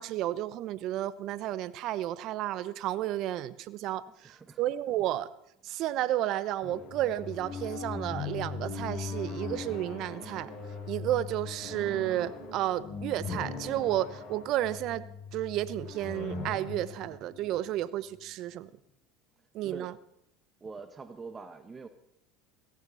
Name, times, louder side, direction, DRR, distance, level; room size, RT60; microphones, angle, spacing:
voice 1, 0.0-5.3 5.6-10.5 10.9-15.0 15.3-18.7 19.5-19.9, right 13 dB, 55° right, 17 dB, 0.9 m, -32 dB
voice 2, 4.2-4.6 19.6-19.9 20.6-21.9, right 4 dB, 25° right, 10 dB, 1.3 m, -44 dB
sound 1, 6.6-18.3, left 4 dB, 50° left, 5.3 m, -40 dB
16.5 x 15.0 x 4.1 m, 0.79 s
hypercardioid pair, 90°, 0 cm